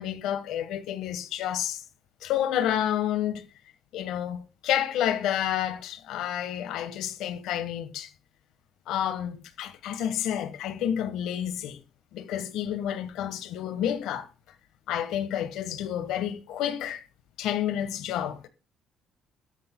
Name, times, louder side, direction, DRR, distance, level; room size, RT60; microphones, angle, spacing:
voice 1, 0.0-1.8 2.2-3.5 3.9-8.1 8.9-11.8 12.1-14.3 14.9-17.0 17.4-18.5, left 10 dB, 80° left, 1.3 m, -30 dB
16.5 x 12.5 x 2.2 m
cardioid pair, 100°, 0 cm